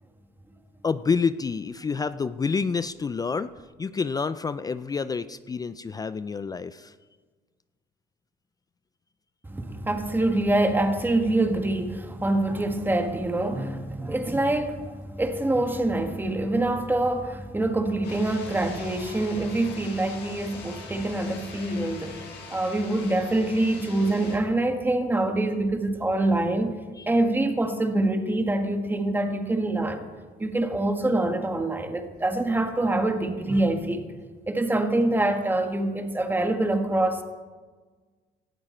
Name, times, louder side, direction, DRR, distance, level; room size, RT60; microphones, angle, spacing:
voice 1, 0.8-3.5 3.8-6.9 27.0-27.1, left 5 dB, 20° left, 0.4 m, -28 dB
voice 2, 9.5-22.2 22.5-26.8 27.1-30.1 30.4-34.0 34.5-37.2, right 2 dB, 10° right, 1.6 m, -25 dB
sound 1, 18.0-24.4, left 3 dB, 80° left, 5.6 m, -43 dB
17.5 x 12.5 x 4.4 m
cardioid pair, 110°, 17 cm